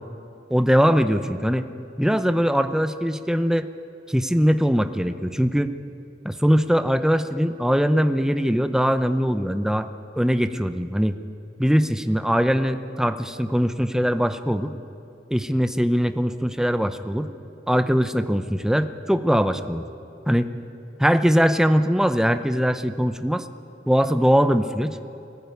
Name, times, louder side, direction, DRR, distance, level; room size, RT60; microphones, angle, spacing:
voice 1, 0.5-1.7 2.0-3.7 4.1-5.7 6.2-9.9 10.2-11.2 11.6-14.7 15.3-17.3 17.7-19.9 20.3-20.5 21.0-23.4 23.9-25.0, equal, 5° right, 10 dB, 0.6 m, -21 dB
21.5 x 14.5 x 9.4 m, 2.7 s
head